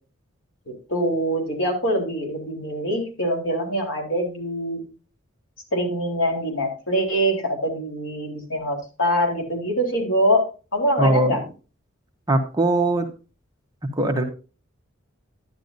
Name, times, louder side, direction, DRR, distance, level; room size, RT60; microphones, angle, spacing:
voice 1, 0.7-4.8 5.7-10.5 10.7-11.4, equal, 70° left, 1 dB, 3.8 m, -24 dB
voice 2, 11.0-11.4 12.3-13.1 13.9-14.2, right 2 dB, 20° right, 4 dB, 1.2 m, -20 dB
11.0 x 10.5 x 2.7 m, 0.34 s
head